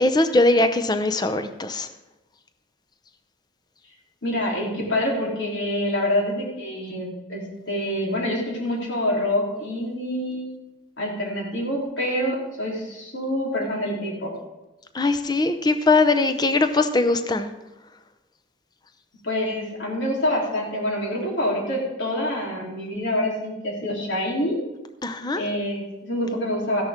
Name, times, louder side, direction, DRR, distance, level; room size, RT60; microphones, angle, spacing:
voice 1, 0.0-1.9 14.9-17.5 25.0-25.4, left 2 dB, 20° left, 9 dB, 0.7 m, -21 dB
voice 2, 4.2-10.5 11.0-14.3 19.2-24.6 25.3-26.8, left 1 dB, 75° left, -3 dB, 3.6 m, -26 dB
14.0 x 11.0 x 3.7 m, 1.1 s
head